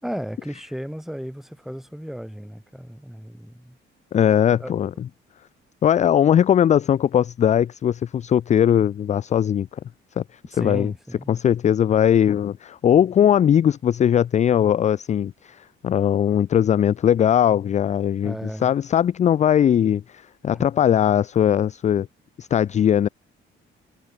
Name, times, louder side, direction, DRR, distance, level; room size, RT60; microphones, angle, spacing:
voice 1, 0.0-3.8 4.5-4.7 10.5-11.4 18.2-18.7 20.5-20.7, equal, ahead, 3.8 m, -34 dB
voice 2, 4.1-4.9 5.8-9.7 10.2-10.3 10.5-10.9 11.3-18.3 18.6-22.1 22.4-23.1, left 9 dB, 35° left, 0.4 m, -19 dB
cardioid pair, 135°, 21 cm